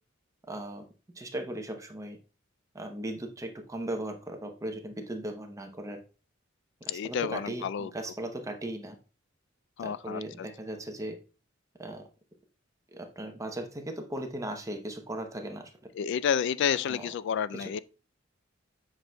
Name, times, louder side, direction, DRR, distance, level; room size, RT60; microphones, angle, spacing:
voice 1, 0.5-0.9 1.1-2.2 2.7-6.0 6.8-9.0 9.8-11.2 11.8-12.1 12.9-15.7 16.9-17.1 17.6-17.8, right 1 dB, 15° right, 0.7 m, -37 dB
voice 2, 6.9-7.9 9.8-10.2 16.0-17.8, left 8 dB, 65° left, 0.3 m, -30 dB
7.8 x 5.9 x 2.2 m
head